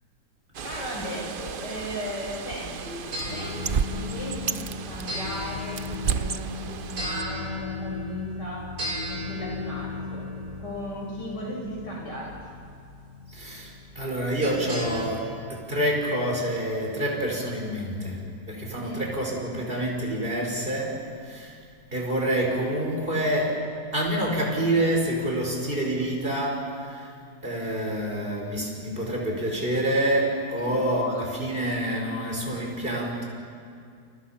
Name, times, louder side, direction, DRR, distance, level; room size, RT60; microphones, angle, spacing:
Bird, 0.5-7.2, right 7 dB, 70° right, 0.5 m, -33 dB
voice 1, 0.6-3.0 3.3-3.6 3.9-8.7 9.1-10.3 10.6-12.3 18.8-19.0 30.6-30.8, equal, 70° left, -3 dB, 8.5 m, -36 dB
sound 1, 2.3-15.1, left 2 dB, 90° right, 5.5 m, -36 dB
voice 2, 13.3-21.6 21.9-23.6 23.9-27.1 27.4-33.2, right 1 dB, 30° right, -1 dB, 5.4 m, -27 dB
29.5 x 28.5 x 5.9 m, 2.3 s
omnidirectional pair, 1.9 m